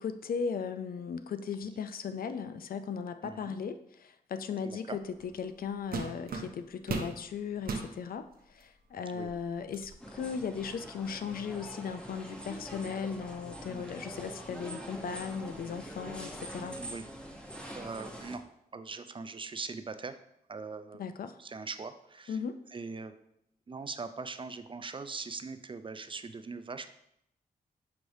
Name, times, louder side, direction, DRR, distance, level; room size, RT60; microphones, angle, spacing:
voice 1, 0.0-16.8 21.0-21.4 22.3-22.6, left 6 dB, 60° left, 10 dB, 0.4 m, -37 dB
voice 2, 3.2-3.6 4.6-5.0 9.1-9.3 14.2-14.3 16.8-17.1 17.7-18.4 18.7-20.2 20.5-21.0 21.4-22.4 22.7-23.1 23.7-26.9, right 4 dB, 30° right, 10 dB, 0.4 m, -41 dB
sound 1, 5.2-5.4 5.9-7.2 7.6-7.9 8.6-8.7 9.2-9.9, right 4 dB, 65° right, 0.7 m, -36 dB
sound 2, 10.0-18.4, equal, 5° left, 0.8 m, -44 dB
5.9 x 3.2 x 2.6 m, 0.75 s
cardioid pair, 55°, 17 cm